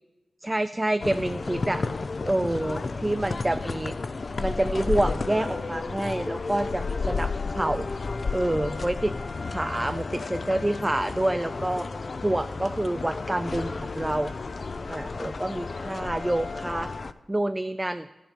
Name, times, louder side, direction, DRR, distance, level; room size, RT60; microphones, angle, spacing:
voice 1, 0.4-1.8 2.3-3.9 4.4-7.9 8.3-9.1 9.5-11.9 12.2-14.3 14.9-16.9 17.3-18.1, right 1 dB, 15° right, 9 dB, 0.4 m, -27 dB
sound 1, 1.0-17.1, left 4 dB, 50° left, 0.4 m, -32 dB
13.5 x 8.9 x 5.1 m, 1.2 s
cardioid pair, 70°, 0 cm